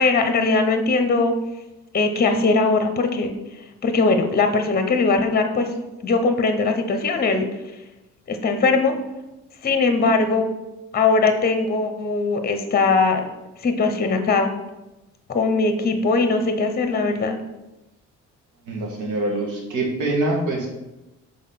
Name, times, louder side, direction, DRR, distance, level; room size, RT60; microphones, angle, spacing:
voice 1, 0.0-1.3 1.9-3.3 3.8-5.7 6.0-7.5 8.3-8.9 9.6-10.5 10.9-13.2 13.6-14.5 15.3-17.4, left 3 dB, 30° left, 6 dB, 0.9 m, -20 dB
voice 2, 18.7-20.7, right 2 dB, 85° right, -1 dB, 1.9 m, -24 dB
5.7 x 4.3 x 5.7 m, 1.0 s
cardioid pair, 90°, 30 cm